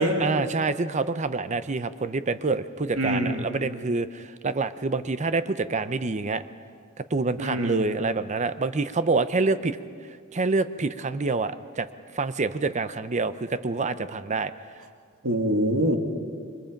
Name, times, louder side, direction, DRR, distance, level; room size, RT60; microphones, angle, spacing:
voice 1, 0.2-6.4 7.1-9.8 10.3-11.9 12.1-14.5, right 3 dB, 35° right, 12 dB, 0.6 m, -27 dB
voice 2, 3.0-3.4 7.4-7.8 15.2-16.0, right 1 dB, 90° right, 3 dB, 2.3 m, -24 dB
28.0 x 24.0 x 5.2 m, 2.1 s
head